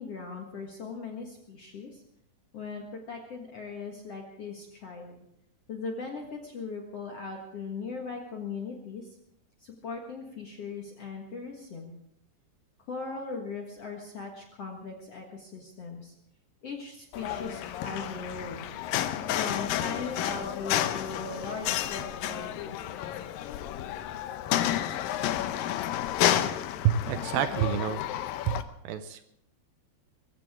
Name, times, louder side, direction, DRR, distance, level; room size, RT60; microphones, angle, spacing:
voice 1, 0.0-2.0 2.5-5.3 5.7-9.2 9.6-12.0 12.9-16.1 16.6-18.6 19.4-23.2, left 4 dB, 55° left, 1 dB, 1.9 m, -39 dB
sound 1, 17.1-28.6, left 12 dB, 80° left, 2.1 m, -31 dB
voice 2, 26.8-28.0 28.4-28.6 28.8-29.2, right 10 dB, 75° right, 10 dB, 2.2 m, -27 dB
22.5 x 15.0 x 3.7 m, 0.76 s
omnidirectional pair, 4.9 m